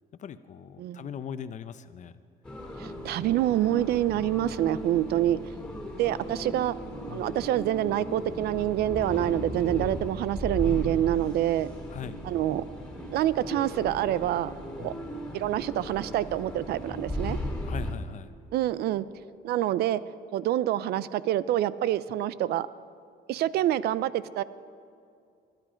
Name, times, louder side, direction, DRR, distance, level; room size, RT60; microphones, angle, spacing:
voice 1, 0.2-2.1 7.1-7.3 11.9-12.2 14.8-14.9 17.6-18.3, left 8 dB, 45° left, 12 dB, 0.8 m, -40 dB
sound 1, 2.4-17.9, equal, 5° left, 2.9 m, -36 dB
voice 2, 2.8-5.4 6.0-6.8 7.1-11.7 12.2-12.6 13.1-14.9 15.3-17.4 18.5-19.1 19.4-20.0 20.3-22.7 23.3-24.4, right 13 dB, 70° right, 17 dB, 0.6 m, -26 dB
23.5 x 11.0 x 5.1 m, 2.4 s
cardioid pair, 110°, 17 cm